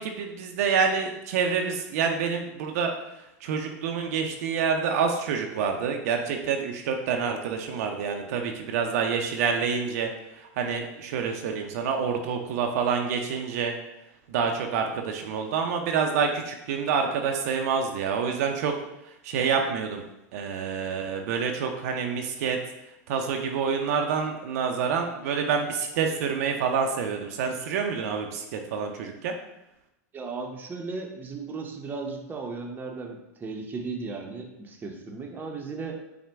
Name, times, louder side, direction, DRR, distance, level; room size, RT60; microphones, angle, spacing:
voice 1, 0.0-2.9 3.4-10.1 10.4-13.7 14.3-18.7 19.2-20.0 20.3-22.6 23.1-29.3, right 6 dB, 70° right, 3 dB, 0.5 m, -27 dB
voice 2, 30.1-36.0, right 4 dB, 20° right, 2 dB, 0.7 m, -36 dB
5.8 x 2.2 x 3.3 m, 0.89 s
hypercardioid pair, 100°, 9 cm